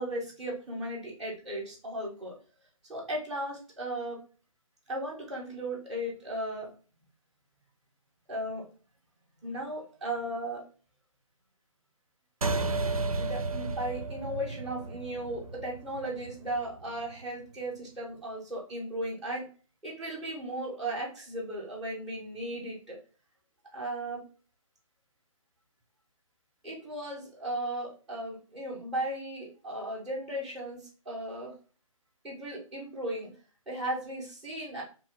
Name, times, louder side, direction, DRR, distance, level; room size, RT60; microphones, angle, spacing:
voice 1, 0.0-2.3 2.9-4.2 4.9-6.7 8.3-8.6 9.4-10.6 13.2-19.5 19.8-23.0 23.7-24.2 26.6-31.5 32.2-33.3 33.7-34.8, right 1 dB, ahead, -9 dB, 0.4 m, -36 dB
sound 1, 12.4-17.2, right 3 dB, 85° right, 0.4 m, -33 dB
2.8 x 2.2 x 3.3 m, 0.37 s
figure-of-eight pair, 140°, 18 cm